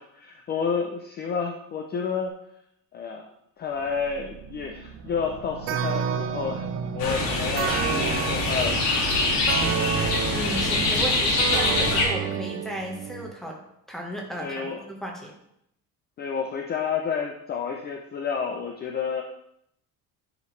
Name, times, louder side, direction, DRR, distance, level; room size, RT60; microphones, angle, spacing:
voice 1, 0.0-2.3 2.9-3.3 3.6-6.6 6.9-8.8 14.4-14.8 16.2-19.2, left 6 dB, 30° left, 2 dB, 0.5 m, -30 dB
sound 1, 3.7-9.3, right 5 dB, 60° right, 1.0 m, -39 dB
sound 2, 5.7-13.3, right 8 dB, 40° right, 0.5 m, -30 dB
sound 3, 7.0-12.1, left 2 dB, 80° left, 2.0 m, -24 dB
voice 2, 10.3-13.6 13.9-15.3, equal, ahead, 0 dB, 1.2 m, -34 dB
9.6 x 5.0 x 3.2 m, 0.78 s
cardioid pair, 160°, 34 cm